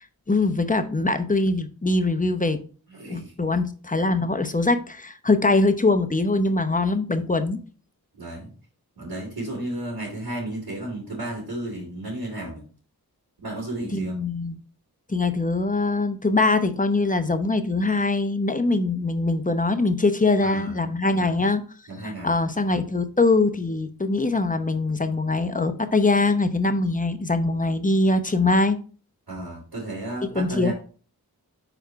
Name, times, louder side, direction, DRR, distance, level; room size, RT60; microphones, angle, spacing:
voice 1, 0.0-2.6 3.1-7.6 13.9-14.5 15.1-21.6 22.0-28.8 30.3-30.7, left 2 dB, 20° left, 0.8 m, -22 dB
voice 2, 2.9-3.3 8.1-8.5 9.0-12.6 13.4-14.2 20.4-20.8 21.1-21.3 21.9-22.3 29.3-30.7, right 1 dB, 90° right, 2.7 m, -33 dB
4.7 x 4.4 x 4.5 m
wide cardioid pair, 40°, 37 cm